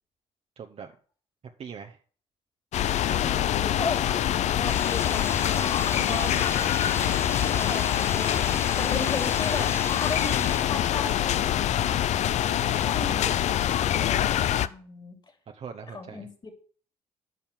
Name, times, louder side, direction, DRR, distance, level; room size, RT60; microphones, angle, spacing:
voice 1, 0.6-0.9 1.6-2.0 5.9-6.5 7.0-7.4 15.5-16.3, right 6 dB, 50° right, 1.0 m, -41 dB
sound 1, 2.7-14.7, left 11 dB, 60° left, 0.5 m, -25 dB
voice 2, 3.0-11.2 12.8-13.6 13.9-15.2 15.9-16.5, left 3 dB, 35° left, 3.1 m, -36 dB
sound 2, 4.6-10.6, left 3 dB, 20° left, 0.7 m, -36 dB
9.4 x 5.5 x 7.4 m
hypercardioid pair, 55°, 13 cm